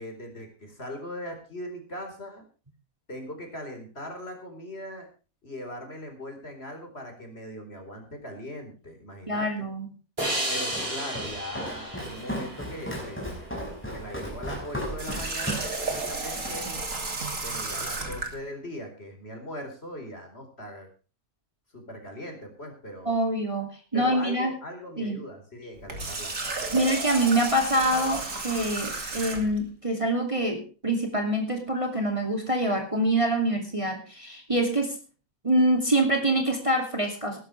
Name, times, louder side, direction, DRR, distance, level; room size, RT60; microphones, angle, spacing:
voice 1, 0.0-2.4 3.1-5.1 5.4-9.7 10.5-16.9 17.4-20.9 21.7-23.1 23.9-26.8, equal, 40° left, 4 dB, 4.6 m, -40 dB
voice 2, 9.3-9.9 23.1-24.5 25.0-25.2 26.7-35.0 35.4-37.4, right 1 dB, 20° right, 3 dB, 2.6 m, -25 dB
Walk footsteps, 10.2-16.6, equal, 5° left, 5.6 m, -36 dB
sound 1, 10.2-13.5, right 1 dB, 40° right, 5.7 m, -33 dB
Water tap faucet, 15.0-18.4 25.8-29.6, right 3 dB, 60° right, 3.2 m, -33 dB
20.0 x 11.5 x 3.3 m, 0.35 s
omnidirectional pair, 1.6 m